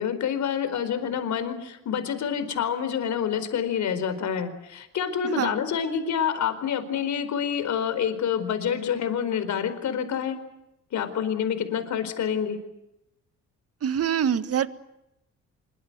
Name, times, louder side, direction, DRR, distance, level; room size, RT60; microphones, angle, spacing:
voice 1, 0.0-10.4 10.9-12.6, left 8 dB, 70° left, 10 dB, 4.6 m, -27 dB
voice 2, 13.8-14.7, right 8 dB, 50° right, 12 dB, 1.7 m, -24 dB
25.5 x 23.5 x 8.0 m, 0.89 s
cardioid pair, 90°, 30 cm